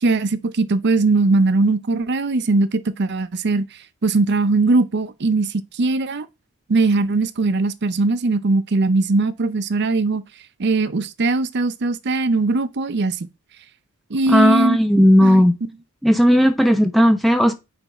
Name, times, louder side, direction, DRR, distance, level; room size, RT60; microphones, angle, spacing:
voice 1, 0.0-3.6 4.0-6.2 6.7-10.2 10.6-13.3 14.1-14.8 15.2-15.4, right 3 dB, 50° right, 0.6 m, -20 dB
voice 2, 14.3-15.6 16.0-17.5, equal, ahead, 0.5 m, -14 dB
9.2 x 3.4 x 4.1 m
head